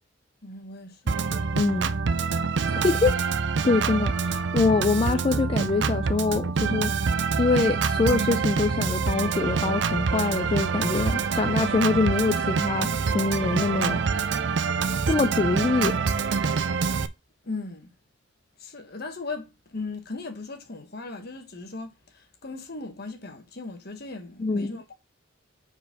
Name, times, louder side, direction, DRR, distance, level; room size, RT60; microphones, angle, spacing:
voice 1, 0.4-1.2 1.6-1.9 2.4-2.5 17.4-17.9 18.6-24.9, left 3 dB, 55° left, 1.4 m, -38 dB
Organ, 1.1-17.1, right 5 dB, 60° right, 0.5 m, -26 dB
voice 2, 1.6-1.9 2.7-3.2 3.6-6.9 7.4-14.0 15.1-16.0 24.4-24.8, left 3 dB, 30° left, 0.3 m, -24 dB
5.0 x 4.4 x 5.8 m
head